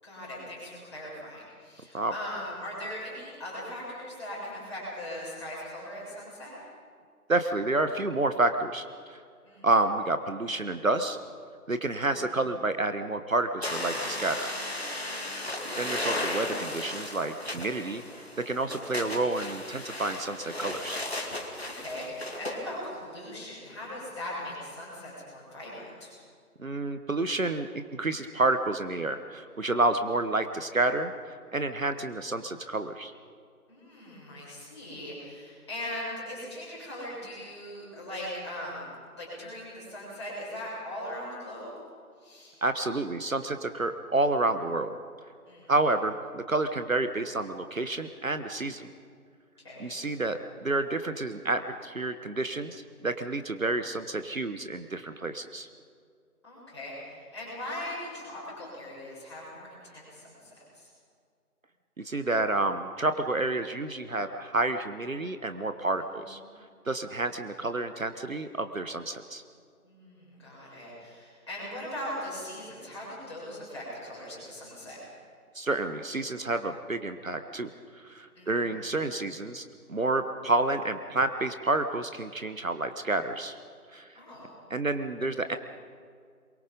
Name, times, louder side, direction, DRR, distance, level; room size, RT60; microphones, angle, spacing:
voice 1, 0.0-6.6 9.4-9.7 12.1-12.2 15.1-15.5 18.8-18.9 21.6-26.1 33.7-38.9 39.1-41.7 42.2-42.5 45.5-45.7 49.6-50.0 56.4-60.9 69.8-75.0 78.4-78.5 84.1-84.5, left 1 dB, 20° left, -9 dB, 7.1 m, -40 dB
voice 2, 7.3-9.2 9.6-11.2 11.7-14.5 15.8-21.0 26.6-31.1 31.5-33.1 42.6-44.9 45.7-48.9 49.8-55.7 62.0-66.4 66.9-69.4 75.5-77.7 78.0-79.6 79.9-83.6 83.9-84.1 84.7-85.6, right 2 dB, 60° right, 9 dB, 1.2 m, -29 dB
sound 1, 13.6-22.6, left 1 dB, 40° left, 2.3 m, -35 dB
25.5 x 23.0 x 5.3 m, 2.1 s
figure-of-eight pair, 175°, 45 cm